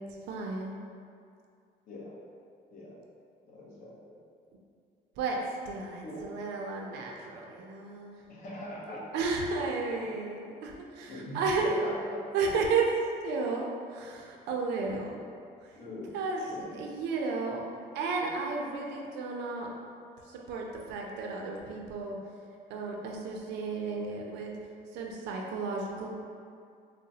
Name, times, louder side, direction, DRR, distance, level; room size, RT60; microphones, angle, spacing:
voice 1, 0.3-0.8 5.2-5.4 5.7-8.2 9.1-11.9 12.3-12.9 13.2-15.2 15.6-15.7 16.1-17.6 17.9-19.7 20.3-22.2 22.7-24.5 24.9-26.1, right 4 dB, 85° right, 0 dB, 0.5 m, -33 dB
voice 2, 1.9-2.2 2.7-2.9 3.4-4.0 6.0-6.3 8.3-9.2 11.0-12.2 15.7-16.1 16.5-16.8, left 1 dB, 55° left, -6 dB, 0.9 m, -41 dB
3.9 x 2.1 x 2.7 m, 2.3 s
cardioid pair, 110°, 17 cm